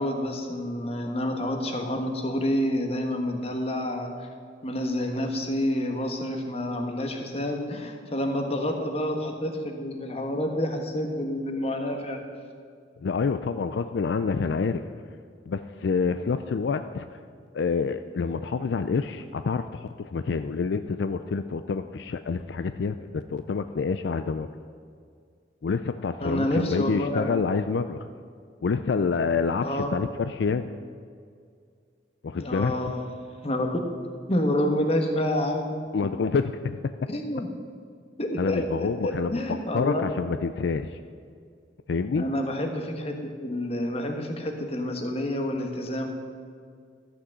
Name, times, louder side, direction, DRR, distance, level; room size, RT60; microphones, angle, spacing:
voice 1, 0.0-4.3 4.6-12.2 26.2-27.3 29.6-30.0 32.4-33.0 33.4-33.8 34.3-35.7 37.1-37.5 38.2-40.1 42.2-43.2 43.4-46.1, left 1 dB, 35° left, 3 dB, 1.3 m, -28 dB
voice 2, 13.0-14.8 15.5-17.2 17.5-24.5 25.6-28.1 28.6-30.7 32.2-32.7 35.9-36.8 38.4-39.4 39.7-41.0 41.9-42.2, left 5 dB, 70° left, 9 dB, 0.4 m, -27 dB
13.0 x 6.1 x 7.6 m, 2.2 s
head